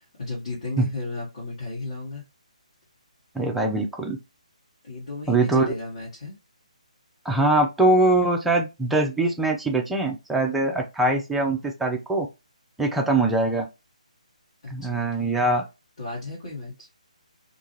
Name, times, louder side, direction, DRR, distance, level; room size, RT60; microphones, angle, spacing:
voice 1, 0.0-2.2 4.8-6.3 14.6-15.6 16.0-16.9, left 2 dB, 45° left, 1.3 m, -34 dB
voice 2, 3.3-4.2 5.3-5.7 7.2-12.3 12.8-13.7 14.7-15.6, right 2 dB, 5° right, 0.4 m, -22 dB
2.6 x 2.3 x 2.9 m
figure-of-eight pair, 140°, 4 cm